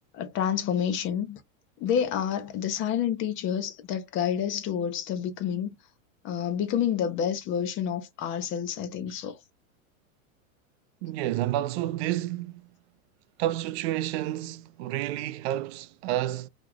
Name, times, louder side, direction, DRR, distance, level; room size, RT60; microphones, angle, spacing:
voice 1, 0.1-1.4 1.8-5.7 6.2-9.3, left 9 dB, 30° left, 0.7 m, -29 dB
voice 2, 11.0-12.6 13.4-16.5, right 14 dB, 50° right, 0.5 m, -30 dB
3.0 x 2.4 x 3.8 m
supercardioid pair, 150°, 41 cm